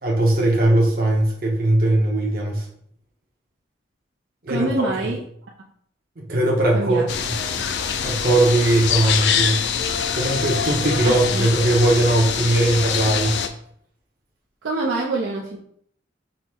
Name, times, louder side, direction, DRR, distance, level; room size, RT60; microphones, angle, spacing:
voice 1, 0.0-2.7 4.4-4.7 5.0-5.1 6.3-7.4 8.0-9.7 10.2-13.4, right 1 dB, 50° right, -1 dB, 0.7 m, -19 dB
voice 2, 4.5-5.2 6.7-7.0 11.0-11.5 14.6-15.6, right 2 dB, 85° right, -1 dB, 0.5 m, -25 dB
sound 1, 7.1-13.5, left 7 dB, 70° left, 0.4 m, -24 dB
3.8 x 2.0 x 4.3 m, 0.64 s
head